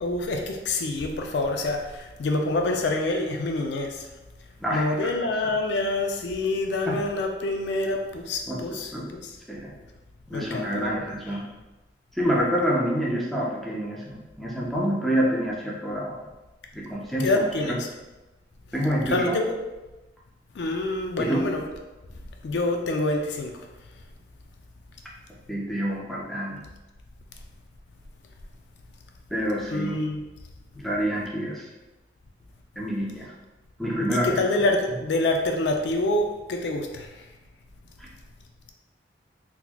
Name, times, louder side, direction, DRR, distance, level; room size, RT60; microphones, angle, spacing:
voice 1, 0.0-4.1 4.7-9.3 10.3-11.0 17.2-17.9 19.1-19.4 20.5-21.6 22.4-23.7 29.7-30.2 34.1-37.3, left 2 dB, 70° left, 3 dB, 0.4 m, -26 dB
voice 2, 4.6-5.1 5.4-5.5 6.9-7.0 8.5-9.1 9.5-9.8 10.3-11.4 12.1-16.3 16.7-17.8 18.7-19.4 21.2-21.4 25.5-26.6 29.3-29.9 30.7-31.7 32.8-33.3 33.8-34.3 38.0-38.1, equal, ahead, -5 dB, 0.6 m, -27 dB
3.9 x 2.9 x 2.2 m, 1.1 s
head